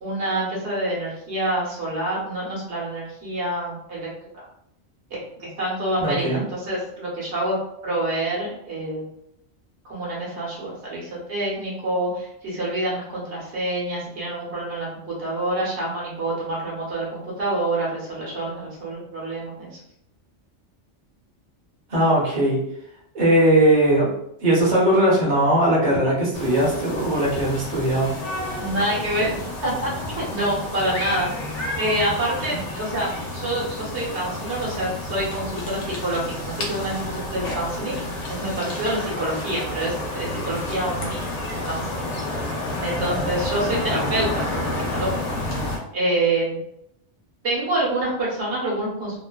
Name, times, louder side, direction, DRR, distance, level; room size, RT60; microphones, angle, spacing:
voice 1, 0.0-4.1 4.3-4.4 5.1-7.6 7.8-9.0 9.8-19.7 28.6-29.3 29.6-31.3 31.8-38.0 38.3-41.2 41.5-42.1 42.8-44.5 44.9-45.4 45.9-46.6 47.4-49.2, right 1 dB, 70° right, -5 dB, 1.2 m, -27 dB
voice 2, 6.0-6.4 21.9-22.6 23.1-24.1 24.4-28.1, right 1 dB, 35° right, -5 dB, 0.8 m, -19 dB
sound 1, 26.3-45.8, left 1 dB, 75° left, 1.0 m, -30 dB
2.8 x 2.0 x 2.2 m, 0.76 s
omnidirectional pair, 1.2 m